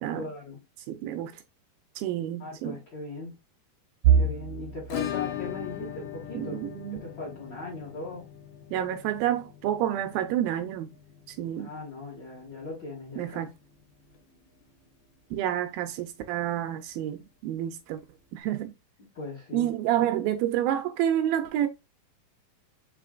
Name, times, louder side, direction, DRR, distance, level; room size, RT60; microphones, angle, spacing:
voice 1, 0.1-0.6 2.4-3.4 4.1-6.6 6.9-8.3 11.6-13.4 19.0-19.7 19.9-20.1, left 2 dB, 40° left, 1.8 m, -39 dB
voice 2, 0.9-1.4 2.0-2.8 6.3-7.0 8.7-10.9 11.3-11.7 13.2-13.5 15.3-18.0 18.3-18.7 19.5-21.7, right 11 dB, 80° right, 2.3 m, -29 dB
sound 1, 4.0-15.9 16.3-16.6 16.9-17.1 18.0-18.4, right 7 dB, 65° right, 1.5 m, -33 dB
Acoustic guitar / Strum, 4.9-13.5 13.8-13.9 14.1-14.2 14.6-14.7 16.8-16.9 18.0-18.1, left 12 dB, 85° left, 2.7 m, -40 dB
5.6 x 3.7 x 2.4 m
omnidirectional pair, 4.3 m